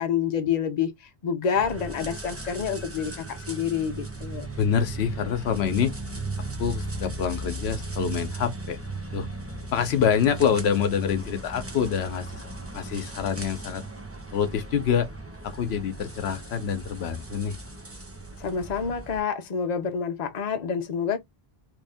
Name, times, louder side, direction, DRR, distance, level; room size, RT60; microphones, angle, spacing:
voice 1, 0.0-4.5 18.4-21.2, left 7 dB, 45° left, 0.8 m, -28 dB
sound 1, 1.6-19.2, right 2 dB, 15° right, 0.7 m, -37 dB
voice 2, 4.6-5.9 6.6-8.8 9.1-9.3 9.7-13.8 14.3-15.1 15.4-17.6, left 7 dB, 90° left, 1.0 m, -26 dB
3.3 x 2.6 x 3.4 m
omnidirectional pair, 1.0 m